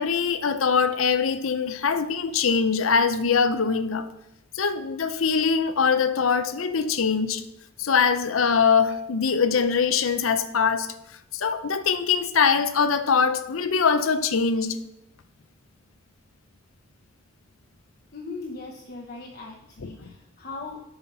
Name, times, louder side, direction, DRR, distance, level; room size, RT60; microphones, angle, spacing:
voice 1, 0.0-4.1 4.5-7.4 7.8-10.9 11.3-14.8 19.8-19.9, left 5 dB, 90° left, 11 dB, 0.6 m, -23 dB
voice 2, 18.1-21.0, left 3 dB, 45° left, -1 dB, 0.9 m, -39 dB
8.0 x 5.7 x 5.4 m, 0.88 s
head